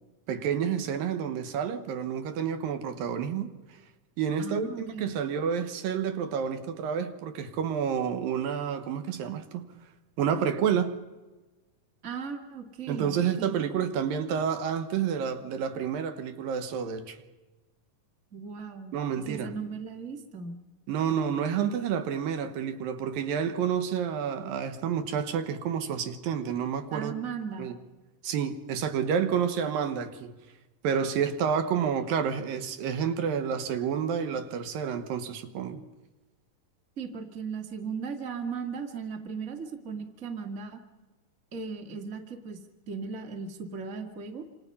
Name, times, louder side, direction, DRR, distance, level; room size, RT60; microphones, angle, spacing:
voice 1, 0.3-3.6 4.2-9.7 10.2-10.9 12.9-17.2 18.9-19.6 20.9-27.1 27.6-27.7 28.2-30.3 30.8-35.8, right 7 dB, 80° right, 3.1 m, -29 dB
voice 2, 4.4-5.1 12.0-13.6 18.3-19.0 19.3-20.6 26.9-27.7 37.0-40.8 41.5-42.6 42.9-44.5, right 5 dB, 25° right, 1.7 m, -37 dB
27.0 x 27.0 x 5.6 m
omnidirectional pair, 4.1 m